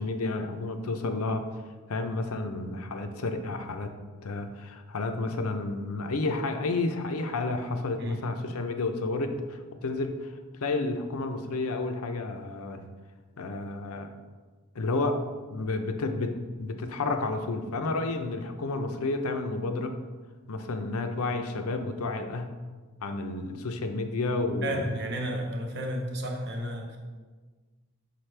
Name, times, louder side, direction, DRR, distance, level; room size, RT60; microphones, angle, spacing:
voice 1, 0.0-1.4 1.9-3.9 4.2-10.3 10.6-12.8 13.4-14.1 14.7-15.2 15.5-16.3 16.6-19.9 20.5-22.5 23.0-25.0, left 3 dB, 80° left, 6 dB, 0.6 m, -31 dB
voice 2, 24.6-27.0, equal, 50° right, 2 dB, 0.9 m, -32 dB
5.8 x 5.4 x 3.3 m, 1.4 s
head